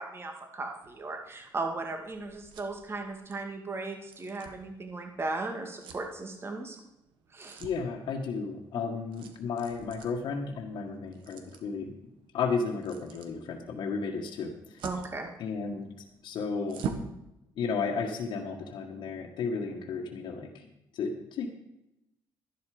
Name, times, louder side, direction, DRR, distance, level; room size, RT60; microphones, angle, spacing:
voice 1, 0.0-6.8 7.3-7.6 14.8-15.3, right 3 dB, 30° right, 3 dB, 2.1 m, -36 dB
sound 1, 0.8-17.2, right 6 dB, 90° right, 1.6 m, -46 dB
voice 2, 7.6-11.9 12.3-14.8 15.4-15.9 16.2-16.8 17.6-20.7 20.9-21.5, left 5 dB, 70° left, 1 dB, 1.7 m, -33 dB
13.0 x 11.5 x 5.1 m, 0.88 s
cardioid pair, 100°, 8 cm